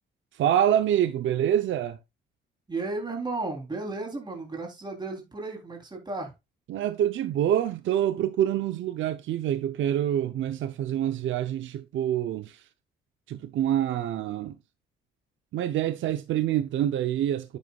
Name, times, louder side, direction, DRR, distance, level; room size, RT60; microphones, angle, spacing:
voice 1, 0.3-2.0 6.7-12.6 13.3-14.6 15.5-17.6, right 11 dB, 75° right, 0.8 m, -26 dB
voice 2, 2.7-6.3, right 3 dB, 20° right, 3.5 m, -34 dB
9.5 x 8.3 x 2.4 m
cardioid pair, 90°, 20 cm